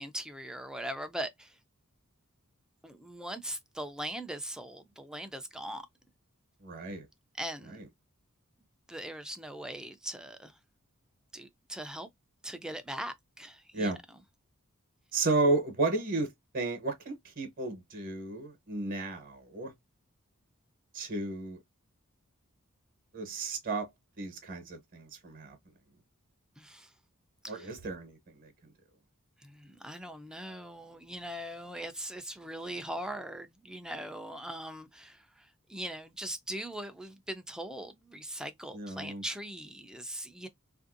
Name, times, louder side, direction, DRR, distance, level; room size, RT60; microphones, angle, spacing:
voice 1, 0.0-1.5 2.8-5.8 7.4-7.8 8.9-10.5 11.3-12.1 12.4-13.9 26.6-26.9 27.4-27.7 29.5-35.2 35.7-40.5, right 1 dB, 5° right, 0.4 m, -40 dB
voice 2, 6.6-7.1 7.6-7.9 13.7-14.0 15.1-19.7 20.9-21.6 23.1-23.9 24.2-25.6 27.5-28.5 38.7-39.2, right 3 dB, 40° right, 0.9 m, -33 dB
3.3 x 2.6 x 2.5 m
head